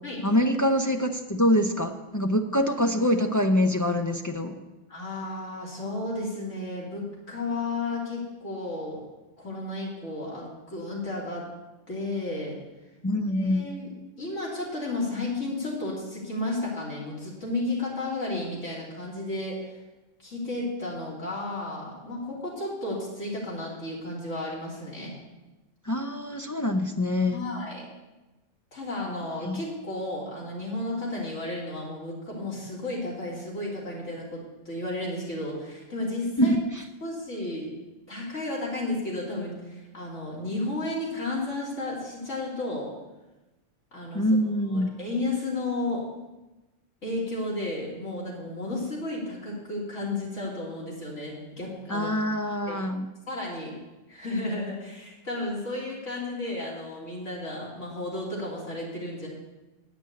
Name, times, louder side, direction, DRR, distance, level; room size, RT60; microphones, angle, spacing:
voice 1, 0.2-4.5 13.0-13.7 25.8-27.5 29.4-29.6 36.4-36.9 44.1-45.0 51.9-53.1, left 1 dB, 30° left, 3 dB, 0.3 m, -25 dB
voice 2, 4.9-9.0 9.4-11.5 11.9-12.6 13.3-13.9 14.2-19.6 20.2-25.2 27.3-27.9 28.7-36.6 37.0-37.7 38.1-42.9 43.9-44.2 44.7-46.1 47.0-52.1 52.7-52.8 53.3-53.8 54.1-59.3, left 2 dB, 80° left, -5 dB, 3.6 m, -33 dB
10.0 x 6.2 x 8.3 m, 1.1 s
omnidirectional pair, 1.3 m